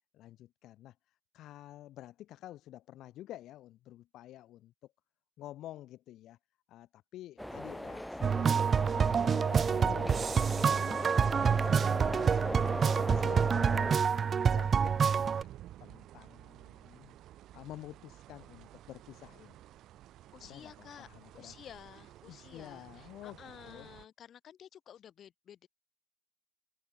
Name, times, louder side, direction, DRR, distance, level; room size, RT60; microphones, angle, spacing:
voice 1, 0.1-4.7 5.4-6.4 6.7-11.0 11.3-12.1 12.3-15.5 15.8-17.1 17.5-19.6 20.4-21.5 22.3-23.9, left 14 dB, 85° left, 2.3 m, -50 dB
sound 1, 7.4-14.0, left 1 dB, 5° left, 0.5 m, -39 dB
sound 2, 8.2-15.4, right 6 dB, 50° right, 0.4 m, -27 dB
sound 3, 11.3-24.0, right 13 dB, 85° right, 2.6 m, -51 dB
voice 2, 12.5-12.9 20.3-21.1 21.3-25.7, left 9 dB, 65° left, 7.4 m, -52 dB
cardioid pair, 90°, 0 cm